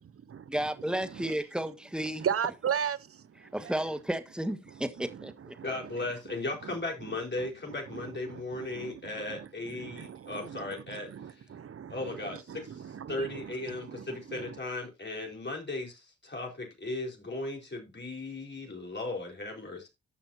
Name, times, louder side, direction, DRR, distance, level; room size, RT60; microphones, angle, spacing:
voice 1, 0.5-2.3 3.5-5.5, right 1 dB, 5° right, 1.5 m, -33 dB
voice 2, 1.0-1.3 2.2-3.0 5.0-5.3 5.6-5.7 7.9-8.0 8.3-8.4 8.7-8.9 9.3-9.4 9.8-12.0 12.5-13.3 13.9-14.0, right 8 dB, 50° right, 0.8 m, -35 dB
voice 3, 5.6-11.1 11.9-12.7 13.1-15.9 16.2-19.9, left 2 dB, 35° left, 4.5 m, -36 dB
14.0 x 5.9 x 2.8 m
supercardioid pair, 50°, 30 cm